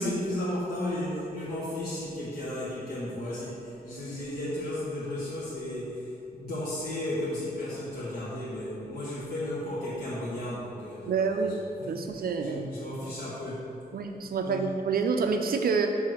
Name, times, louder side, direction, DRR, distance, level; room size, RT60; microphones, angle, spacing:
voice 1, 0.0-11.5 11.8-13.7 14.4-14.7, left 1 dB, 70° left, -9 dB, 1.3 m, -34 dB
voice 2, 11.1-11.6 11.9-12.7 13.9-15.9, right 5 dB, 65° right, 5 dB, 0.4 m, -27 dB
6.4 x 3.8 x 6.1 m, 2.7 s
wide cardioid pair, 160°, 16 cm